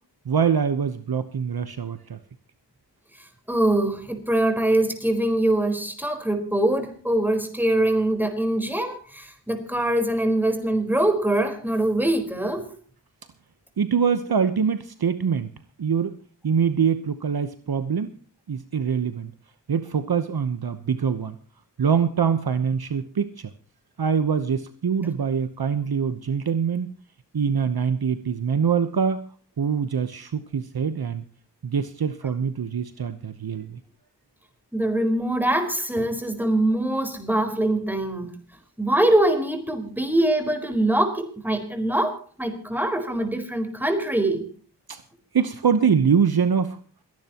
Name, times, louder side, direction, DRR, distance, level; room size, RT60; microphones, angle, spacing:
voice 1, 0.2-2.2 13.8-15.5 15.8-16.2 16.4-18.1 18.5-19.3 19.7-21.4 21.8-23.5 24.0-26.9 27.3-29.3 29.6-31.2 31.6-33.8 44.9-45.0 45.3-46.8, right 6 dB, 60° right, 11 dB, 1.0 m, -24 dB
voice 2, 3.5-12.7 34.7-38.3 38.8-44.5, right 1 dB, 5° right, 5 dB, 4.3 m, -23 dB
27.5 x 10.5 x 3.0 m, 0.41 s
cardioid pair, 50°, 42 cm